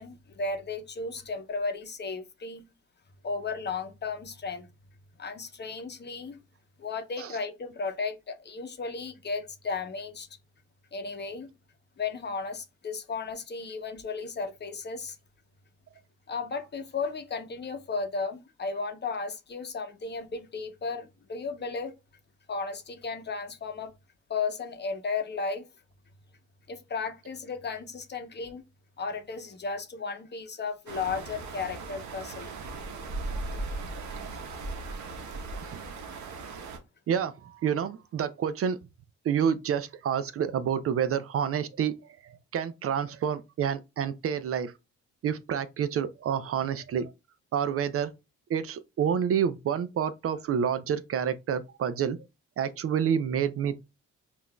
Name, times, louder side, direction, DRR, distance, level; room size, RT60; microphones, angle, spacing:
voice 1, 0.0-2.7 3.2-4.7 5.2-6.4 6.8-10.3 10.9-11.5 12.0-15.2 16.3-22.0 22.5-23.9 24.3-25.7 26.7-28.6 29.0-32.5, left 4 dB, 35° left, 0.8 m, -34 dB
sound 1, 30.9-36.8, right 3 dB, 70° right, 0.9 m, -37 dB
voice 2, 37.1-38.8 39.2-42.0 42.2-44.7 45.2-47.1 47.5-48.1 48.5-52.2 52.6-53.8, right 8 dB, 50° right, 0.4 m, -28 dB
5.6 x 2.5 x 2.2 m
cardioid pair, 90°, 30 cm